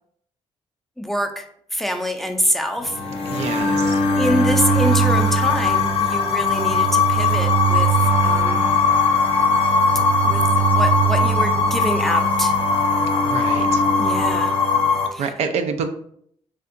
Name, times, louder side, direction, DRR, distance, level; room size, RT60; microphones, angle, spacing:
voice 1, 1.0-1.5 1.7-3.0 4.2-8.7 10.2-12.5 14.0-14.6 15.1-15.3, equal, ahead, 5 dB, 0.4 m, -25 dB
sound 1, 2.8-15.1, left 2 dB, 60° left, 0.6 m, -19 dB
voice 2, 3.3-3.9 13.2-13.8 15.2-15.9, right 5 dB, 75° right, 7 dB, 0.4 m, -26 dB
3.4 x 2.7 x 2.5 m, 0.65 s
cardioid pair, 100°, 11 cm